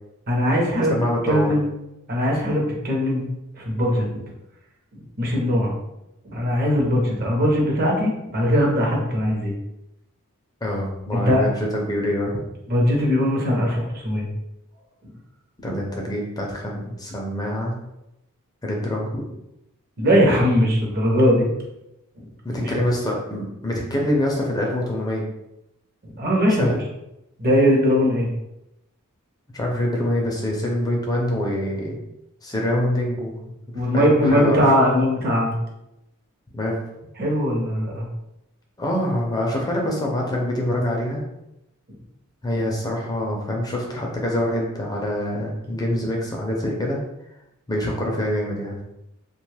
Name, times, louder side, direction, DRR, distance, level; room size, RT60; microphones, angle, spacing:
voice 1, 0.3-0.9 1.3-1.7 2.1-3.3 3.6-4.1 5.2-5.7 6.2-9.5 11.1-11.4 12.7-14.3 20.0-21.5 22.2-22.3 22.6-22.7 26.0-26.7 27.4-28.3 33.7-35.6 37.2-38.1, equal, 45° right, -1 dB, 0.7 m, -20 dB
voice 2, 0.9-1.5 3.9-4.2 10.6-12.4 15.6-17.8 18.6-19.2 22.4-25.2 26.6-26.8 29.5-32.0 32.4-33.3 33.7-34.7 36.5-36.8 38.8-41.2 42.4-47.0 47.7-48.8, left 1 dB, 15° left, -1 dB, 0.4 m, -25 dB
2.8 x 2.2 x 3.2 m, 0.87 s
head